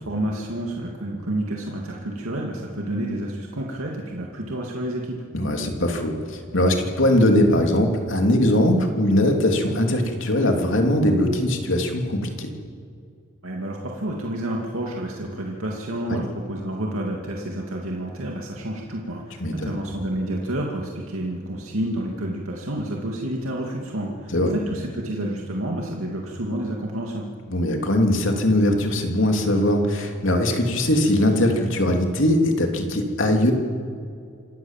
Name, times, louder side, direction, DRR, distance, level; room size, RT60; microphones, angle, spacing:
voice 1, 0.0-5.2 13.4-27.3, right 1 dB, 90° right, -1 dB, 2.5 m, -29 dB
voice 2, 5.3-12.5 16.1-16.2 19.4-19.7 24.3-24.5 27.5-33.5, left 1 dB, 65° left, 3 dB, 3.1 m, -21 dB
27.0 x 16.5 x 7.5 m, 2.4 s
head